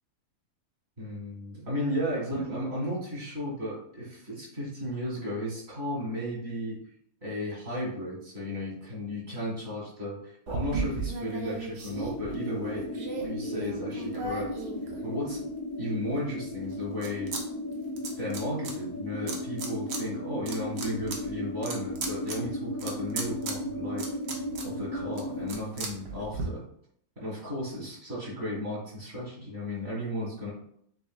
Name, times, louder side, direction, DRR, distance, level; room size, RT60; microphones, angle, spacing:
voice 1, 1.0-6.8 7.2-12.9 13.2-14.5 15.0-15.4 15.8-17.3 18.2-24.1 24.6-26.6 27.2-30.5, equal, 45° right, -5 dB, 2.2 m, -34 dB
sound 1, 10.5-15.5 16.0-17.4 17.7-18.7 19.3-20.0 20.4-26.4, right 4 dB, 85° right, 1.4 m, -37 dB
sound 2, 11.9-25.5, left 1 dB, 50° left, 0.7 m, -36 dB
7.1 x 2.7 x 2.3 m, 0.67 s
omnidirectional pair, 1.7 m